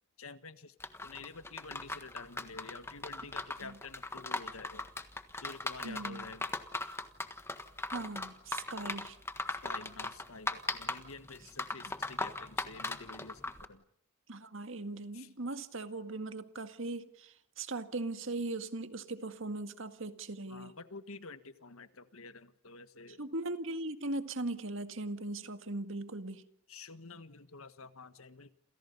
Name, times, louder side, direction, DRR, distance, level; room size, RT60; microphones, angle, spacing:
voice 1, 0.2-0.8 1.0-4.9 5.3-6.6 9.6-13.8 15.1-15.3 20.5-23.2 26.7-28.5, left 4 dB, 75° left, 11 dB, 1.6 m, -49 dB
sound 1, 0.8-13.7, left 2 dB, 10° left, 1.5 m, -39 dB
voice 2, 5.8-6.3 7.9-9.2 14.3-20.7 23.2-26.5, right 2 dB, 60° right, 9 dB, 1.9 m, -39 dB
29.0 x 28.5 x 5.6 m, 0.67 s
head